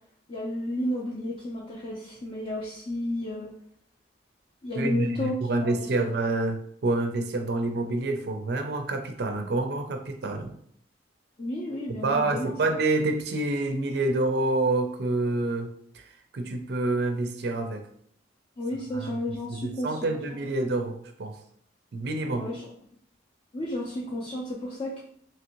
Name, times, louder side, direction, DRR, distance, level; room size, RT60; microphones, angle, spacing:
voice 1, 0.3-3.5 4.6-6.1 11.4-12.5 18.6-20.4 22.3-22.7 23.5-25.0, left 1 dB, 35° left, -5 dB, 0.5 m, -32 dB
voice 2, 4.7-10.5 12.0-15.7 15.9-16.0 16.3-17.8 18.9-19.1 19.5-21.4 21.9-22.5, right 2 dB, 55° right, 5 dB, 0.4 m, -27 dB
2.9 x 2.6 x 2.9 m, 0.64 s
head